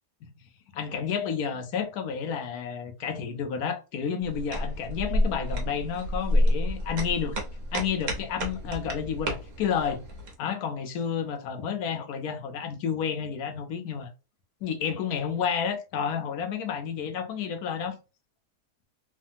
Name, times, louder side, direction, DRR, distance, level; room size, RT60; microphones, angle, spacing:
voice 1, 0.7-7.4 7.7-10.0 10.4-14.1 14.6-18.0, left 7 dB, 75° left, 1.1 m, -30 dB
sound 1, 4.2-10.3, equal, 60° right, 1.1 m, -29 dB
3.3 x 2.1 x 2.6 m
omnidirectional pair, 1.7 m